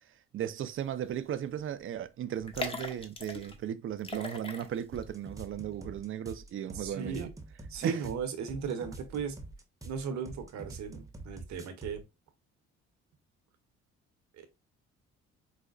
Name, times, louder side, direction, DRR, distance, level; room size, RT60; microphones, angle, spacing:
voice 1, 0.3-7.3 7.8-8.1, right 10 dB, 45° right, 0.5 m, -36 dB
sound 1, 1.1-1.3 1.6-1.7 2.4-3.6 4.0-5.0 5.4-5.5, left 3 dB, 20° left, 0.8 m, -39 dB
sound 2, 4.9-12.0, right 2 dB, 10° right, 0.8 m, -46 dB
voice 2, 6.7-7.3 7.7-9.4 9.8-12.0 14.4-14.5, right 6 dB, 65° right, 0.9 m, -36 dB
4.8 x 2.1 x 2.4 m
supercardioid pair, 60°, 30 cm